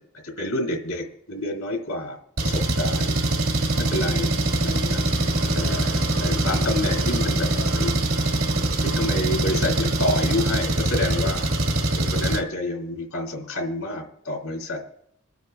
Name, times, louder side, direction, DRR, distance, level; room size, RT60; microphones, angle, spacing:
voice 1, 0.2-3.2 3.8-5.0 5.5-7.9 8.8-11.5 12.0-14.8, left 1 dB, 85° left, 1 dB, 2.9 m, -29 dB
Engine, 2.4-12.4, right 1 dB, 75° right, 1.7 m, -23 dB
28.0 x 9.3 x 2.3 m, 0.72 s
head